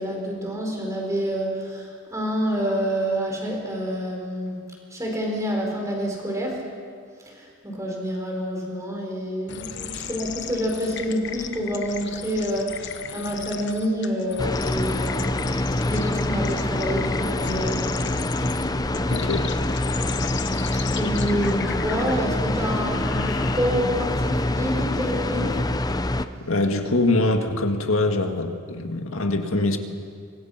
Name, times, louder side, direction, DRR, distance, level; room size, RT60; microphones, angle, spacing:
voice 1, 0.0-4.6 4.9-6.7 7.2-15.4 15.9-18.2 21.0-25.5, equal, 15° right, 0 dB, 4.8 m, -28 dB
sound 1, 9.5-24.0, left 7 dB, 55° left, 1.2 m, -36 dB
sound 2, 14.4-26.3, left 1 dB, 15° left, 0.6 m, -25 dB
voice 2, 19.1-19.5 26.5-29.8, left 2 dB, 70° left, 5 dB, 1.9 m, -23 dB
27.0 x 25.5 x 5.9 m, 2.2 s
head